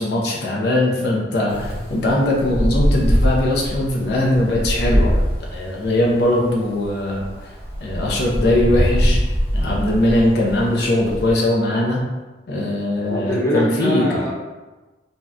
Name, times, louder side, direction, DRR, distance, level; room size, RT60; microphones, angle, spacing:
voice 1, 0.0-7.3 7.8-9.2 9.5-12.0 12.5-14.2, left 1 dB, 65° left, -3 dB, 0.5 m, -20 dB
Wind, 1.5-11.4, equal, 30° left, 1.1 m, -22 dB
voice 2, 13.1-14.3, equal, 15° left, -7 dB, 0.7 m, -23 dB
2.7 x 2.1 x 3.5 m, 1.2 s
head